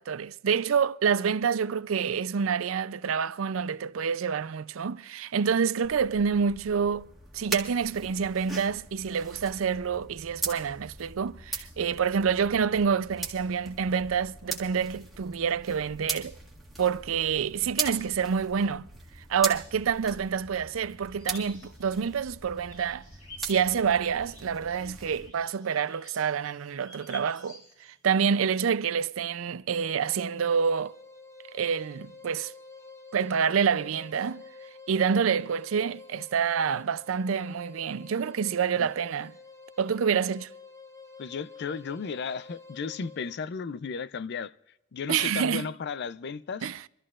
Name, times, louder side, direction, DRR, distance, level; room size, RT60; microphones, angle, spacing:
voice 1, 0.0-7.1 7.3-16.3 16.8-18.9 19.3-23.0 23.4-30.9 31.5-32.5 33.1-34.4 34.9-39.3 39.8-40.5 45.1-45.7 46.6-46.8, right 6 dB, 85° right, 0.5 m, -27 dB
sound 1, 5.8-25.3, right 3 dB, ahead, 1.8 m, -40 dB
sound 2, 20.5-28.0, left 2 dB, 85° left, 4.4 m, -51 dB
sound 3, 29.7-43.4, left 4 dB, 15° left, 1.1 m, -49 dB
voice 2, 41.2-44.5 44.9-46.7, left 5 dB, 55° left, 0.4 m, -34 dB
26.0 x 13.5 x 2.4 m
head